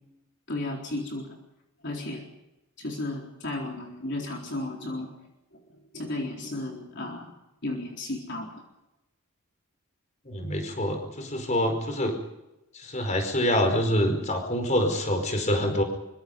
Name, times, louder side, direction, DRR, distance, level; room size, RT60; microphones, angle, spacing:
voice 1, 0.5-1.4 1.8-2.2 2.8-5.1 5.5-5.6 5.9-7.3 7.6-8.6, left 2 dB, 50° left, 0 dB, 4.0 m, -34 dB
voice 2, 10.2-12.2 12.7-15.8, equal, 35° left, 5 dB, 4.9 m, -26 dB
26.0 x 24.5 x 5.4 m, 0.94 s
head